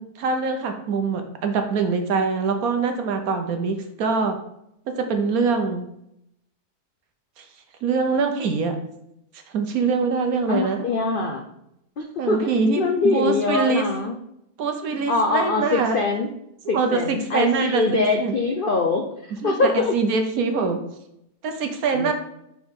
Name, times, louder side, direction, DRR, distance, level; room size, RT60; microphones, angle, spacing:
voice 1, 0.0-4.4 4.9-5.9 7.4-7.5 7.8-8.8 9.5-10.9 12.2-13.9 14.6-16.0 16.7-18.3 19.4-20.8 21.4-22.1, right 4 dB, 70° right, 6 dB, 1.2 m, -24 dB
voice 2, 10.5-11.4 12.0-14.2 15.1-16.3 16.7-19.9 21.9-22.1, left 3 dB, 75° left, 3 dB, 0.4 m, -23 dB
5.7 x 4.5 x 3.7 m, 0.78 s
omnidirectional pair, 1.7 m